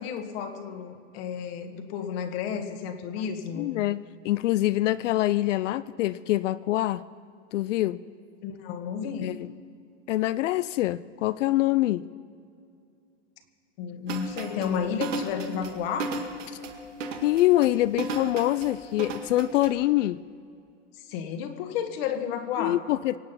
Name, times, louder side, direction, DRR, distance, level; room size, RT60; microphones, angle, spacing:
voice 1, 0.0-3.7 8.4-9.3 13.8-16.2 21.1-22.8, left 7 dB, 55° left, 7 dB, 1.6 m, -32 dB
voice 2, 3.5-4.0 4.2-7.0 7.5-8.0 9.2-9.5 10.1-12.1 17.2-20.2 22.6-23.2, left 15 dB, 75° left, 15 dB, 0.5 m, -25 dB
sound 1, 14.1-19.7, right 2 dB, 80° right, 2.1 m, -34 dB
24.5 x 8.5 x 5.6 m, 2.4 s
supercardioid pair, 140°, 38 cm